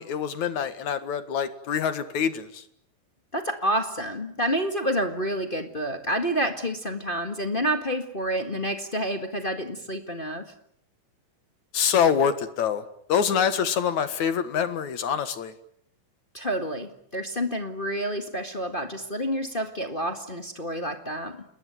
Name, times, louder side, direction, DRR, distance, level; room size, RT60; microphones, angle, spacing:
voice 1, 0.0-2.6 11.7-12.8 13.1-15.5, left 7 dB, 60° left, 2.9 m, -25 dB
voice 2, 3.3-10.5 16.3-21.4, equal, 25° left, 1.1 m, -29 dB
29.0 x 21.0 x 9.3 m
omnidirectional pair, 3.9 m